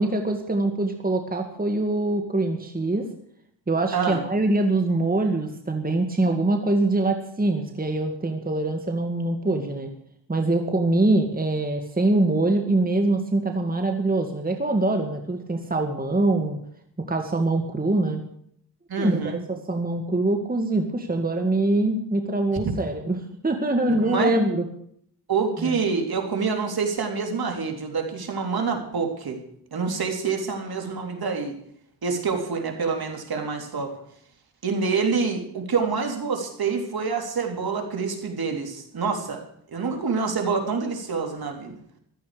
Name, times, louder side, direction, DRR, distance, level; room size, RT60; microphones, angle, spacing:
voice 1, 0.0-3.1 3.7-9.9 10.3-16.6 17.0-18.2 19.0-24.7 25.6-25.8, right 2 dB, 20° right, 4 dB, 1.9 m, -24 dB
voice 2, 18.9-19.4 24.0-24.3 25.3-29.4 29.7-31.5 32.0-34.0 34.6-39.4 39.7-41.8, right 5 dB, 55° right, 3 dB, 3.5 m, -26 dB
15.5 x 13.0 x 5.1 m, 0.67 s
cardioid pair, 80°, 43 cm